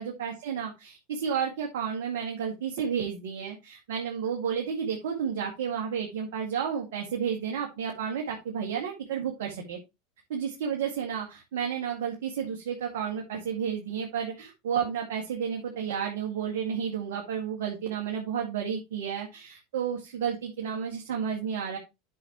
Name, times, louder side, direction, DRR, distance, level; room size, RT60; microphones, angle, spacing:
voice 1, 0.0-9.8 10.3-21.8, right 7 dB, 75° right, 0 dB, 2.0 m, -31 dB
10.5 x 6.2 x 3.0 m, 0.24 s
hypercardioid pair, 85°, 0 cm